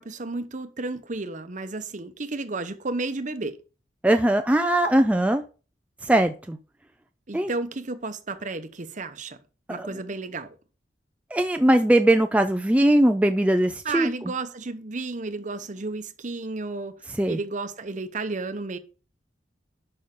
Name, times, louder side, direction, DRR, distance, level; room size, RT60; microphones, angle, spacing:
voice 1, 0.0-3.6 7.3-9.4 9.7-10.5 13.8-17.0 17.3-18.8, right 3 dB, 40° right, 0.8 m, -32 dB
voice 2, 4.0-5.4 6.0-6.6 7.3-7.5 9.7-9.9 11.3-14.1 17.2-17.4, right 1 dB, 5° right, 0.4 m, -20 dB
11.0 x 5.5 x 3.7 m
head